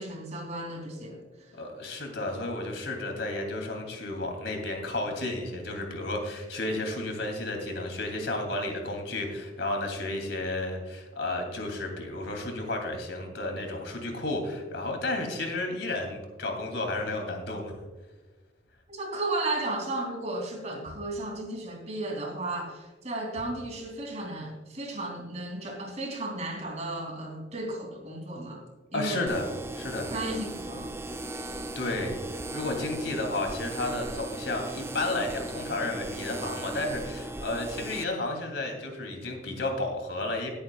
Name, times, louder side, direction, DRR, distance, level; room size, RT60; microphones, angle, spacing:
voice 1, 0.0-1.6 18.9-28.6 28.9-29.3 30.1-30.9, right 2 dB, 40° right, 2 dB, 2.9 m, -34 dB
voice 2, 1.5-17.7 28.9-29.5 29.8-30.1 31.7-32.2 32.5-40.5, left 2 dB, 70° left, 3 dB, 2.8 m, -32 dB
sound 1, 29.3-38.0, right 2 dB, 15° right, 0.5 m, -37 dB
18.5 x 8.7 x 2.3 m, 1.3 s
head